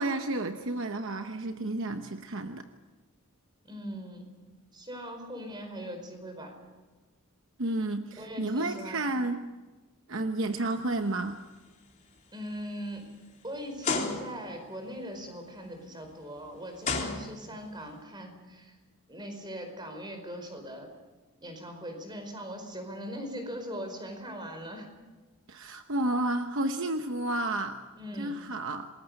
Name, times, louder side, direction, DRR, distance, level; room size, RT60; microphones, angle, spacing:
voice 1, 0.0-2.7 7.6-9.4 10.1-11.4 25.5-27.8 28.2-28.9, right 2 dB, 60° right, 7 dB, 1.0 m, -31 dB
voice 2, 3.6-4.3 4.7-6.5 8.1-9.0 10.6-10.7 12.3-13.0 13.4-18.8 19.1-20.9 21.4-24.9 28.0-28.3, equal, 20° right, 5 dB, 4.8 m, -40 dB
sound 1, 10.7-11.0 11.5-11.7 12.3-12.4 13.8-14.6 16.0-16.1 16.8-17.7, left 4 dB, 35° left, 3.5 m, -32 dB
28.0 x 20.5 x 6.6 m, 1.3 s
head